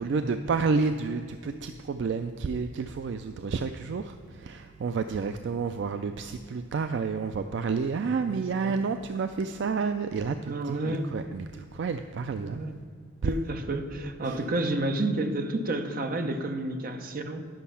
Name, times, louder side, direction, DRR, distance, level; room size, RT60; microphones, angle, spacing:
voice 1, 0.0-12.6 13.2-13.3 14.2-14.4, right 4 dB, 65° right, 8 dB, 0.4 m, -30 dB
voice 2, 8.3-8.8 10.4-11.1 12.4-12.7 13.2-17.5, right 2 dB, 50° right, 6 dB, 0.8 m, -30 dB
10.5 x 6.2 x 5.6 m, 2.2 s
head